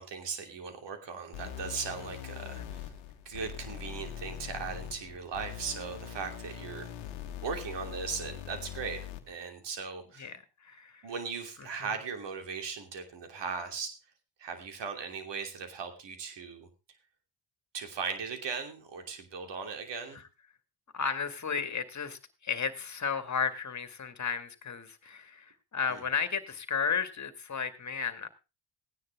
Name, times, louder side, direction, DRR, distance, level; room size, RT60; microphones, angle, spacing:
voice 1, 0.0-2.9 3.2-6.9 7.4-9.0 9.3-10.3 11.0-13.9 14.4-16.7 17.7-20.2 25.9-26.0, right 5 dB, 65° right, 6 dB, 3.1 m, -38 dB
sound 1, 1.3-9.3, left 10 dB, 90° left, 1.4 m, -42 dB
voice 2, 10.2-11.0 20.9-28.3, left 6 dB, 40° left, 11 dB, 2.0 m, -33 dB
16.0 x 9.8 x 3.5 m, 0.28 s
supercardioid pair, 60°, 45 cm